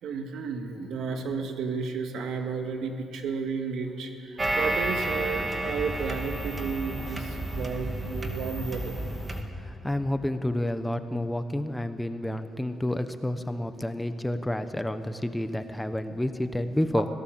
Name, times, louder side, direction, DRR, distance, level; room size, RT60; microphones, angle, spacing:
voice 1, 0.0-9.0, right 5 dB, 80° right, 5 dB, 2.2 m, -32 dB
sound 1, 4.4-9.4, right 1 dB, 25° right, 2.2 m, -31 dB
voice 2, 9.6-17.1, left 1 dB, 5° left, 9 dB, 1.1 m, -29 dB
24.0 x 17.5 x 7.8 m, 2.6 s
cardioid pair, 110°, 0 cm